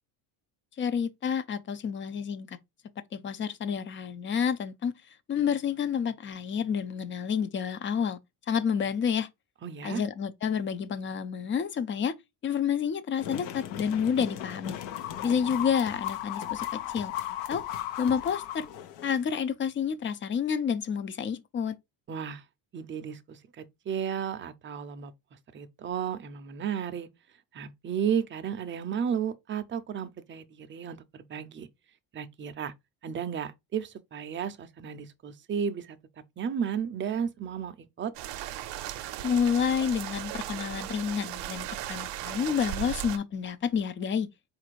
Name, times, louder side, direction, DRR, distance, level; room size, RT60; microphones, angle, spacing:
voice 1, 0.8-2.6 3.1-4.9 5.3-8.2 8.5-9.3 9.8-12.1 12.4-14.8 15.2-17.1 17.5-17.6 18.0-18.7 19.0-21.8 39.2-44.3, left 7 dB, 30° left, 0.4 m, -29 dB
voice 2, 9.6-10.0 22.1-22.4 22.7-25.1 25.5-27.1 27.5-31.7 32.1-32.7 33.0-36.0 36.4-38.1, right 7 dB, 25° right, 0.5 m, -33 dB
sound 1, 13.2-19.2, left 12 dB, 75° left, 0.8 m, -36 dB
sound 2, 38.1-43.2, right 13 dB, 70° right, 0.6 m, -37 dB
4.1 x 2.5 x 4.5 m
cardioid pair, 120°, 44 cm